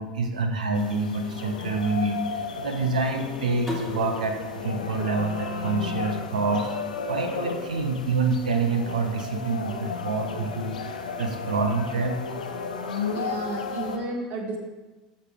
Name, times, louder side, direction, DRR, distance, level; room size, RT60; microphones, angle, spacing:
voice 1, 0.0-2.2 2.6-6.7 7.1-10.8 11.2-12.2, right 3 dB, 80° right, 5 dB, 1.1 m, -27 dB
sound 1, 0.7-14.0, left 5 dB, 80° left, 0.9 m, -34 dB
sound 2, 3.7-6.5, left 2 dB, 5° right, 2.7 m, -39 dB
voice 2, 13.1-14.6, right 2 dB, 45° right, 0 dB, 2.4 m, -32 dB
14.5 x 5.7 x 3.5 m, 1.2 s
figure-of-eight pair, 80°, 4 cm